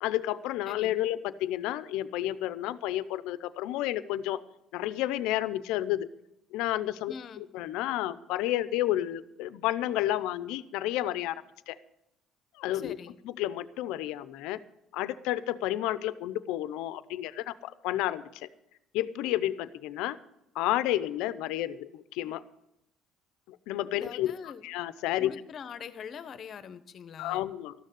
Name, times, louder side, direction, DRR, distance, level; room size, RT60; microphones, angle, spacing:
voice 1, 0.0-4.4 4.7-6.1 6.5-11.3 11.7-11.8 12.6-13.0 13.2-14.6 14.9-18.5 18.9-20.2 20.5-22.4 23.5-24.3 24.6-25.3 27.2-27.7, left 14 dB, 85° left, 15 dB, 0.6 m, -31 dB
voice 2, 7.1-7.4 12.7-13.1 23.9-24.6 25.2-27.5, left 7 dB, 50° left, 13 dB, 0.9 m, -43 dB
13.0 x 6.5 x 9.3 m, 0.84 s
cardioid pair, 105°, 0 cm